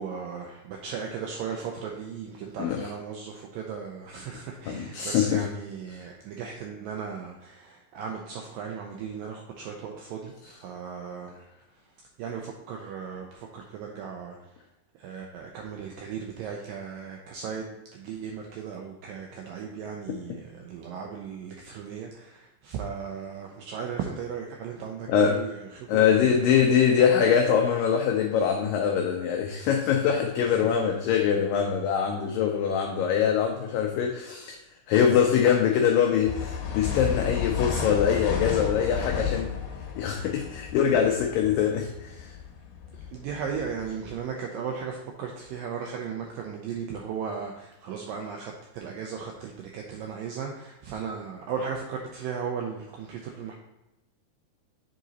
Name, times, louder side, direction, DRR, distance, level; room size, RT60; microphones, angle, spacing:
voice 1, 0.0-11.4 12.2-14.4 15.0-26.2 26.6-26.8 30.4-30.5 43.1-53.6, right 6 dB, 85° right, 1 dB, 2.0 m, -36 dB
voice 2, 2.6-2.9 4.7-5.5 5.9-6.0 10.4-10.5 25.1-25.4 25.9-34.6 34.9-39.5 40.0-42.3, left 8 dB, 90° left, 2 dB, 1.9 m, -23 dB
sound 1, 36.3-44.3, left 7 dB, 75° left, 2.4 m, -33 dB
7.6 x 4.0 x 4.0 m, 0.96 s
omnidirectional pair, 4.7 m